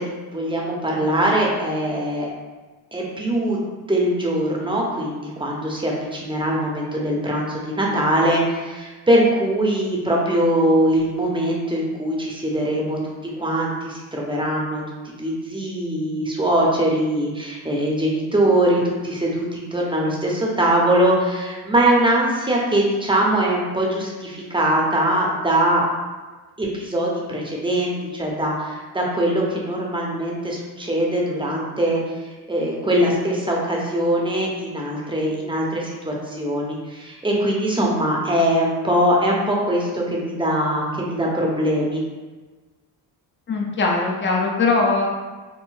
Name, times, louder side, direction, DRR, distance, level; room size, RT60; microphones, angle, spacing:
voice 1, 0.0-2.3 2.9-3.6 3.9-13.0 13.4-25.8 26.6-42.0, right 1 dB, 10° right, -3 dB, 0.7 m, -22 dB
voice 2, 43.5-45.1, left 3 dB, 30° left, -1 dB, 0.6 m, -20 dB
3.8 x 2.0 x 2.6 m, 1.3 s
cardioid pair, 70°, 41 cm